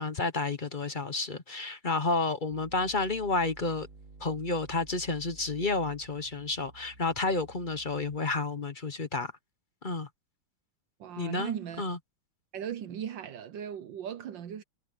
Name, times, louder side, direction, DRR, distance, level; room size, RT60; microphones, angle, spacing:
voice 1, 0.0-3.9 4.2-9.3 9.8-10.1 11.2-12.0, left 3 dB, 35° left, 0.8 m, -31 dB
sound 1, 2.5-8.5, right 2 dB, 40° right, 2.3 m, -52 dB
voice 2, 11.0-11.8 12.5-14.6, right 9 dB, 70° right, 1.5 m, -37 dB
omnidirectional pair, 2.2 m